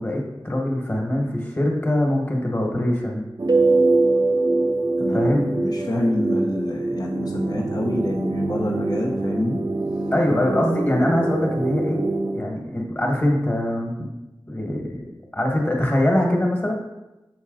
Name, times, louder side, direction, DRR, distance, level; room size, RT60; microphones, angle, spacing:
voice 1, 0.0-3.3 5.1-5.5 10.1-12.1 12.3-14.1 14.5-16.7, left 1 dB, 25° left, 0 dB, 1.5 m, -23 dB
sound 1, 3.4-12.4, right 2 dB, 45° right, 0.4 m, -26 dB
Keyboard (musical), 3.5-6.0, right 3 dB, 60° right, 0.8 m, -21 dB
voice 2, 5.0-9.6, left 1 dB, 55° left, -1 dB, 0.9 m, -27 dB
7.0 x 4.2 x 4.0 m, 1.0 s
wide cardioid pair, 65°, 8 cm